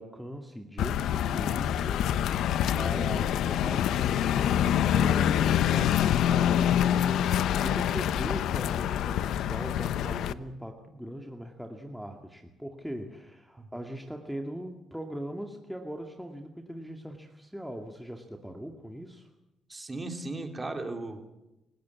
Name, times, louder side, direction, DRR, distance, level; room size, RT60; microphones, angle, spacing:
voice 1, 0.0-2.4 2.7-19.3, equal, ahead, 2 dB, 2.3 m, -40 dB
sound 1, 0.8-10.3, left 10 dB, 80° left, 0.9 m, -26 dB
voice 2, 19.7-21.2, right 2 dB, 20° right, 5 dB, 3.7 m, -37 dB
29.0 x 16.5 x 8.5 m, 0.96 s
cardioid pair, 90°, 0 cm